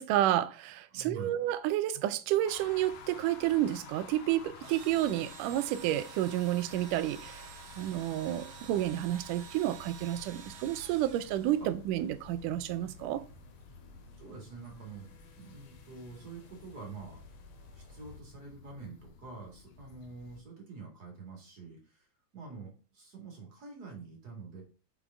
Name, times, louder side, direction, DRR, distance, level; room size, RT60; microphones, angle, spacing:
voice 1, 0.0-7.5 7.8-13.2, right 13 dB, 90° right, 2.1 m, -30 dB
voice 2, 0.9-1.4 11.6-11.7 14.2-17.2 17.7-22.1 22.3-24.6, right 4 dB, 35° right, 2.1 m, -46 dB
sound 1, 2.5-20.4, left 6 dB, 65° left, 1.9 m, -54 dB
Engine / Drill, 4.6-11.9, right 6 dB, 70° right, 1.5 m, -50 dB
sound 2, 4.8-18.2, left 2 dB, 80° left, 2.7 m, -56 dB
6.1 x 5.1 x 3.5 m
omnidirectional pair, 3.6 m